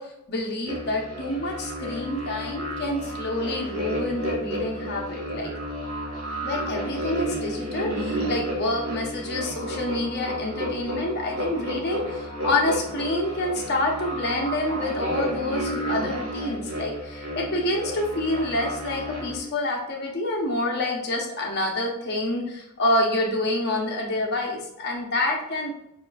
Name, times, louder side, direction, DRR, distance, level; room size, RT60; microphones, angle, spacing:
voice 1, 0.0-5.5 6.4-25.7, left 1 dB, 50° left, 0 dB, 0.8 m, -27 dB
sound 1, 0.7-19.4, equal, 75° right, 1.4 m, -31 dB
6.7 x 2.5 x 2.4 m, 0.81 s
head